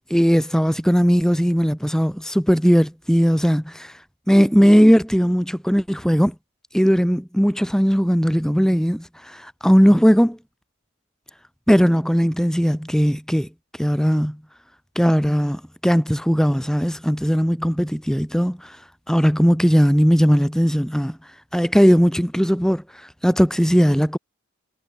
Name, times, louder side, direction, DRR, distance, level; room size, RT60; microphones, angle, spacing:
voice 1, 0.1-4.0 4.3-6.3 6.7-10.4 11.7-13.5 13.8-14.4 15.0-18.8 19.1-21.2 21.5-24.2, equal, 5° left, 7.0 m, -18 dB
head